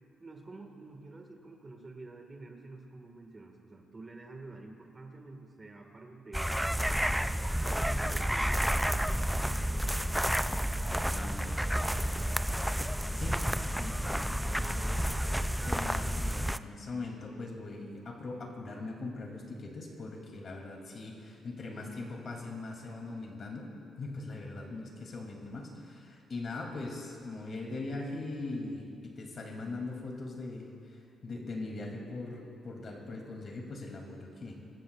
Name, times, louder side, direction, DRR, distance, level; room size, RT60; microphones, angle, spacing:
voice 1, 0.2-6.5 7.7-9.2 24.7-24.9, right 3 dB, 30° right, 2 dB, 1.7 m, -48 dB
sound 1, 6.3-16.6, equal, ahead, 0.4 m, -30 dB
voice 2, 11.0-11.8 13.1-13.4 13.8-15.1 15.7-23.7 24.0-34.5, left 2 dB, 50° left, 0 dB, 2.7 m, -41 dB
24.0 x 14.5 x 2.4 m, 2.5 s
cardioid pair, 90°, 0 cm